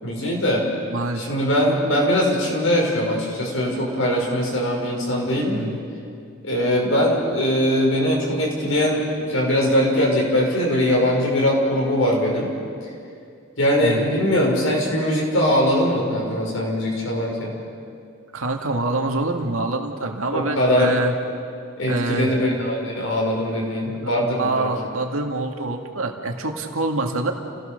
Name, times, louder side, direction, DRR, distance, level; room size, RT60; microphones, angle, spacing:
voice 1, 0.0-0.7 1.2-5.6 6.4-12.5 13.6-17.5 20.3-20.9 21.8-24.7, equal, 75° left, -1 dB, 5.9 m, -21 dB
voice 2, 0.9-1.3 5.4-5.8 13.8-14.1 18.3-21.1 21.9-22.3 24.4-27.3, right 2 dB, 90° right, 3 dB, 2.2 m, -25 dB
30.0 x 17.5 x 6.8 m, 2.4 s
head